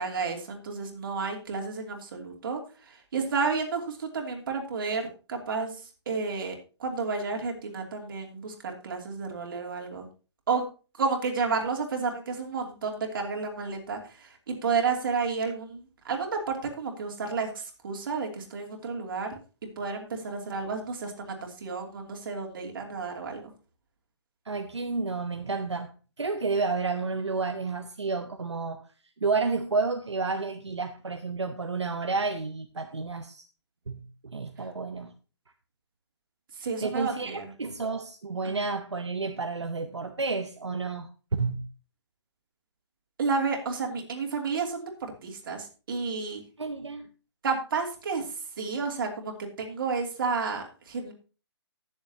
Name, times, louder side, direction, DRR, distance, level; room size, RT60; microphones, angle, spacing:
voice 1, 0.0-10.1 10.5-10.7 11.0-19.4 19.8-23.4 36.6-37.5 38.4-38.5 43.2-46.4 47.4-51.1, right 4 dB, 50° right, 3.0 m, -31 dB
voice 2, 24.4-28.9 29.2-33.4 33.9-35.1 36.8-41.1 41.4-41.6 46.6-47.1, right 4 dB, 80° right, 1.0 m, -31 dB
19.0 x 7.2 x 2.9 m
figure-of-eight pair, 140°, 14 cm